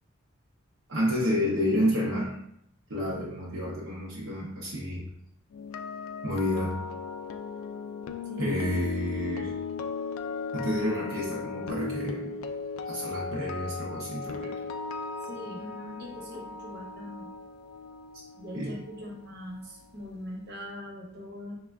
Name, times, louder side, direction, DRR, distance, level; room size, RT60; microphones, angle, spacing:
voice 1, 0.9-2.4 2.9-5.0 6.2-6.7 8.4-9.6 10.5-12.3 12.9-14.5 18.1-18.2 18.5-18.7, equal, 80° right, -4 dB, 0.7 m, -30 dB
sound 1, 5.5-19.6 19.8-20.1, left 5 dB, 85° left, 0.3 m, -37 dB
voice 2, 15.2-17.3 18.4-21.6, left 1 dB, 55° right, -2 dB, 0.9 m, -41 dB
3.4 x 2.2 x 3.4 m, 0.74 s
head